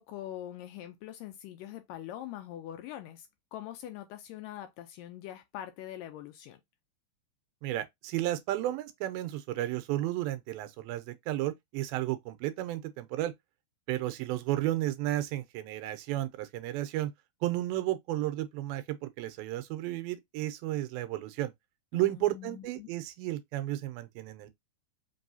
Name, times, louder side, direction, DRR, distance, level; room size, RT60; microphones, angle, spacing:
voice 1, 0.0-6.6 21.9-22.9, left 12 dB, 80° left, 2.0 m, -43 dB
voice 2, 7.6-13.3 13.9-17.1 17.4-21.5 21.9-24.5, right 15 dB, 85° right, 2.4 m, -33 dB
5.4 x 3.0 x 2.6 m
omnidirectional pair, 4.2 m